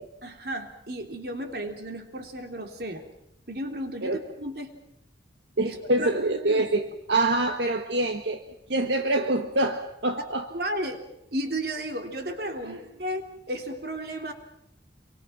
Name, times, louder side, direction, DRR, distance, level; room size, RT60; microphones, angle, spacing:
voice 1, 0.2-3.0 3.5-4.7 5.6-6.1 6.4-6.7 10.5-11.0 11.3-13.2 13.5-14.3, right 1 dB, 60° right, 4 dB, 3.3 m, -33 dB
voice 2, 5.6-8.4 8.7-10.5 12.6-12.8, right 2 dB, 80° right, 5 dB, 1.5 m, -25 dB
28.0 x 23.5 x 5.9 m, 0.81 s
head